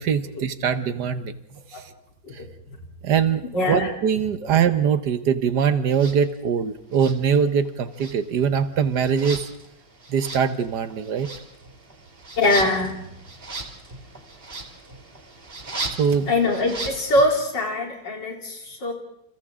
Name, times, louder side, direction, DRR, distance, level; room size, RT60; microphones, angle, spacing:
voice 1, 0.0-1.3 1.7-1.8 2.3-2.4 3.0-9.5 10.1-11.3 16.0-16.3, right 7 dB, 65° right, 11 dB, 1.6 m, -22 dB
voice 2, 3.5-3.9 4.4-4.5 12.4-13.0 16.3-18.9, left 2 dB, 70° left, 1 dB, 4.2 m, -23 dB
sound 1, 5.9-6.2 6.9-7.7 7.9-17.4, right 3 dB, 30° right, 2.0 m, -37 dB
29.0 x 28.5 x 3.7 m, 0.73 s
omnidirectional pair, 2.0 m